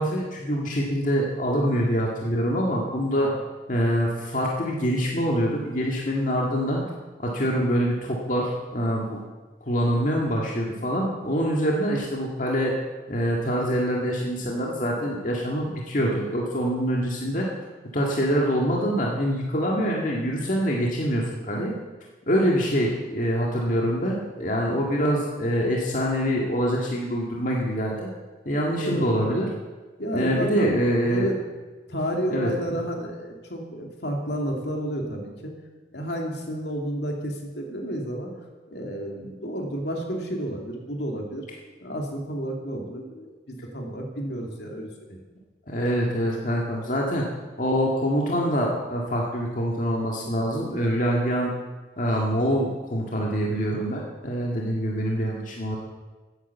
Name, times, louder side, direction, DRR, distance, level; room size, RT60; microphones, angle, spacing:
voice 1, 0.0-3.3 3.7-6.8 7.2-9.2 9.6-12.8 13.1-17.5 17.9-21.7 22.3-28.1 28.5-29.5 30.1-31.3 32.3-32.8 45.7-47.3 47.6-51.5 52.0-55.8, equal, 45° left, -2 dB, 1.9 m, -25 dB
voice 2, 28.8-29.2 30.0-31.4 31.9-35.5 35.9-38.3 38.7-41.4 41.8-45.2, equal, 70° left, 1 dB, 2.8 m, -31 dB
15.5 x 9.9 x 6.9 m, 1.3 s
head